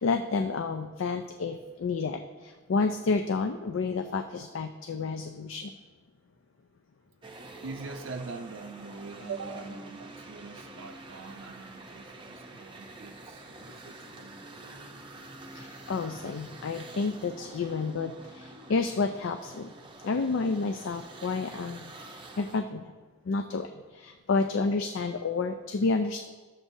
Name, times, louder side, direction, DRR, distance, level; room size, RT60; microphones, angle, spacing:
voice 1, 0.0-5.7 15.5-19.7 20.0-21.9 22.4-22.9 23.3-26.2, left 4 dB, 75° left, 7 dB, 0.4 m, -30 dB
sound 1, 7.2-22.6, right 2 dB, 25° right, 0.7 m, -47 dB
voice 2, 7.6-14.4, right 4 dB, 80° right, 3 dB, 0.5 m, -43 dB
12.5 x 7.5 x 2.7 m, 1.4 s
head